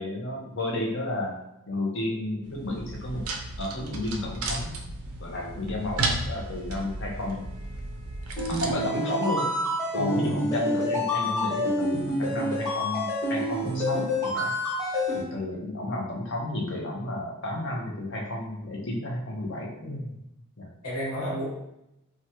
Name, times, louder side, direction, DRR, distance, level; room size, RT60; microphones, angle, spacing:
voice 1, 0.0-1.3 1.7-3.2 3.6-4.8 5.2-7.5 8.5-9.5 9.9-14.6 15.1-19.7 20.6-20.7, left 1 dB, 55° left, -1 dB, 0.7 m, -32 dB
sound 1, 2.4-8.7, right 2 dB, 70° right, 0.4 m, -34 dB
sound 2, 8.4-15.2, left 1 dB, 15° left, 1.2 m, -27 dB
voice 2, 10.0-10.3 19.8-20.2 20.8-21.5, equal, 80° left, -7 dB, 1.4 m, -32 dB
3.0 x 2.2 x 2.8 m, 0.85 s
head